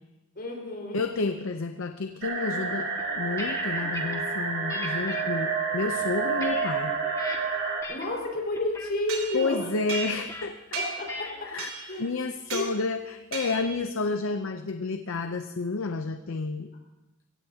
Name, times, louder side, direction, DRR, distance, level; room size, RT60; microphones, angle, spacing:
voice 1, 0.3-1.0 7.9-9.6 10.7-12.1 12.5-12.7, left 2 dB, 50° left, -1 dB, 4.8 m, -31 dB
voice 2, 0.9-6.9 9.3-10.6 11.4-11.7 12.0-16.7, left 3 dB, 70° left, 7 dB, 0.7 m, -30 dB
sound 1, 2.2-7.8, right 4 dB, 60° right, 2.7 m, -29 dB
sound 2, 3.0-4.2 4.7-5.2 5.8-7.4 7.8-8.2 8.5-8.9 9.9-10.4 11.1-11.5, left 2 dB, 15° left, 1.9 m, -39 dB
sound 3, 9.1-10.4 10.7-11.1 11.6-12.0 12.5-12.7 13.3-13.8, right 5 dB, 85° right, 3.8 m, -36 dB
23.5 x 16.5 x 2.8 m, 1.0 s
head